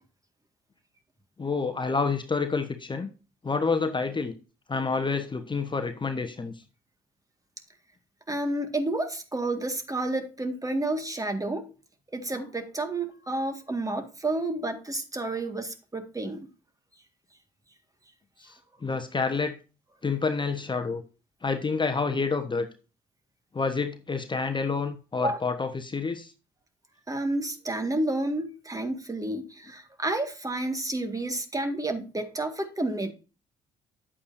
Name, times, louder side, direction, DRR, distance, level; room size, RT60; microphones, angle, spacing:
voice 1, 1.4-3.1 3.4-4.3 4.7-6.5 18.4-19.5 20.0-21.0 21.4-22.7 23.5-26.3, left 4 dB, 25° left, 6 dB, 1.1 m, -28 dB
voice 2, 8.3-11.7 12.1-16.5 25.2-25.4 27.1-33.1, right 2 dB, 20° right, 7 dB, 1.9 m, -30 dB
9.8 x 8.3 x 2.7 m, 0.33 s
hypercardioid pair, 45°, 18 cm